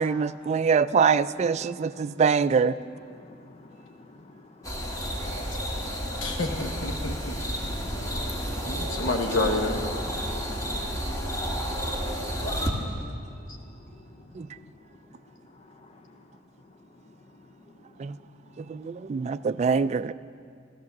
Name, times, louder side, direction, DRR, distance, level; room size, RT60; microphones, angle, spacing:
voice 1, 0.0-2.7 14.4-14.5 18.0-18.1 18.7-20.1, right 5 dB, 35° right, 0.3 m, -24 dB
voice 2, 1.4-2.2 2.7-6.4 6.9-9.1 10.0-11.0 11.3-11.5 12.1-13.0 13.3-13.4 13.7-14.7 15.5-16.2 18.8-18.9, left 1 dB, 35° left, 0.6 m, -50 dB
sound 1, 4.6-12.7, equal, 20° left, 1.7 m, -31 dB
voice 3, 6.2-7.3 8.7-9.9, left 2 dB, 85° left, 1.2 m, -28 dB
14.5 x 13.5 x 7.2 m
head